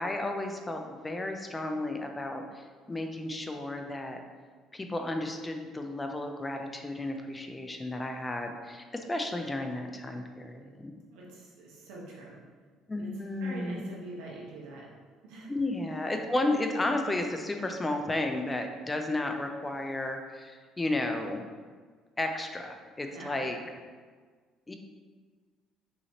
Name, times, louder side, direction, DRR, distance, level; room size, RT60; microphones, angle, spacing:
voice 1, 0.0-4.2 4.7-10.9 12.9-13.8 15.5-21.4 22.2-23.6 24.7-24.8, left 2 dB, 20° left, 4 dB, 0.5 m, -33 dB
voice 2, 11.1-12.4 13.0-13.1 13.4-14.9 15.2-15.5 23.1-23.4, right 2 dB, 80° right, -3 dB, 1.1 m, -44 dB
5.5 x 2.8 x 3.0 m, 1.5 s
supercardioid pair, 70°, 0 cm